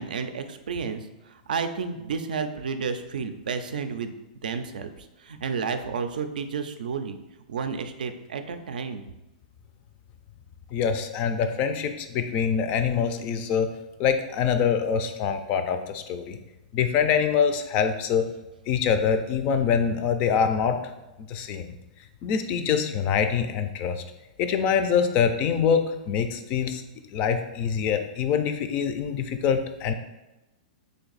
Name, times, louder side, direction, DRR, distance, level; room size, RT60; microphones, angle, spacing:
voice 1, 0.0-4.1 4.4-7.2 7.5-9.0, right 5 dB, 85° right, 8 dB, 0.4 m, -31 dB
voice 2, 10.7-13.7 14.0-16.4 16.7-18.2 18.7-20.8 21.3-21.7 22.2-24.0 24.4-26.8 27.1-29.9, left 7 dB, 30° left, 8 dB, 0.3 m, -24 dB
3.3 x 2.6 x 3.9 m, 1.0 s
hypercardioid pair, 150°, 4 cm